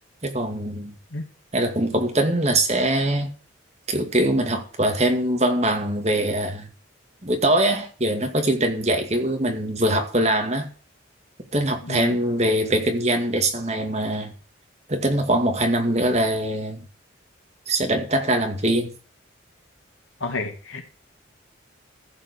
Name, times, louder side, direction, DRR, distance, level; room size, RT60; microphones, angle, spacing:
voice 1, 0.2-1.0 1.5-3.3 3.9-6.7 7.2-10.7 11.5-14.3 14.9-16.8 17.7-18.9, right 1 dB, 35° right, 2.2 m, -22 dB
voice 2, 11.8-12.2 20.2-20.8, left 3 dB, 90° left, 2.6 m, -30 dB
14.5 x 5.3 x 6.7 m
head